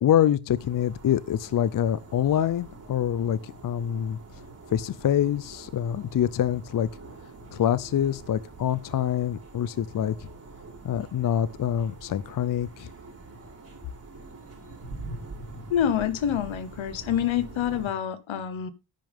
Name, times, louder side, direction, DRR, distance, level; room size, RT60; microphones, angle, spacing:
voice 1, 0.0-4.2 4.7-6.9 7.5-10.3 10.8-12.9, left 10 dB, 45° left, 0.5 m, -25 dB
sound 1, 0.5-17.9, right 2 dB, 30° right, 4.9 m, -44 dB
voice 2, 15.7-18.7, left 9 dB, 75° left, 1.2 m, -27 dB
10.5 x 9.1 x 3.5 m
wide cardioid pair, 150°, 47 cm